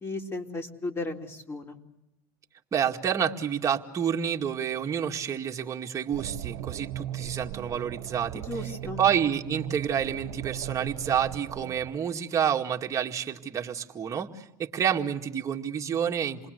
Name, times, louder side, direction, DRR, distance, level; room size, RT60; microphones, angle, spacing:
voice 1, 0.0-1.8 8.3-9.0, left 2 dB, 25° left, 4 dB, 3.5 m, -35 dB
voice 2, 2.7-8.4 9.0-16.5, right 8 dB, 35° right, 3 dB, 2.2 m, -29 dB
sound 1, 6.1-12.0, right 12 dB, 75° right, 1.2 m, -38 dB
28.5 x 20.5 x 8.0 m, 0.87 s
supercardioid pair, 100°, 9 cm